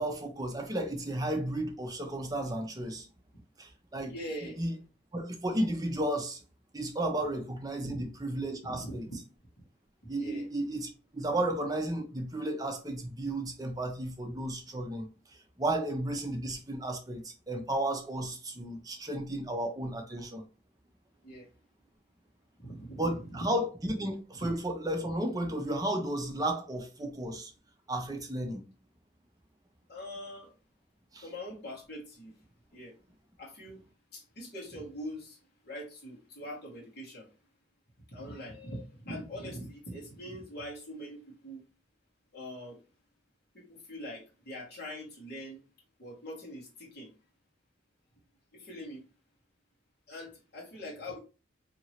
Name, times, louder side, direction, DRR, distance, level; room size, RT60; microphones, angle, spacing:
voice 1, 0.0-3.1 3.6-4.1 4.6-4.7 5.1-6.4 6.7-9.1 10.1-20.4 23.0-27.5 27.9-28.6 31.1-31.3, right 1 dB, 20° right, 0.5 m, -33 dB
voice 2, 4.1-4.6 7.8-8.0 8.6-9.2 10.2-10.5 21.2-21.5 22.6-23.4 24.4-24.5 29.9-30.5 31.2-32.3 32.7-32.9 33.4-33.8 34.1-35.4 35.6-37.3 38.1-41.6 42.3-42.8 43.5-45.6 46.0-47.1 48.5-49.0 50.1-51.2, equal, 55° left, 1.3 m, -43 dB
2.9 x 2.8 x 2.8 m
head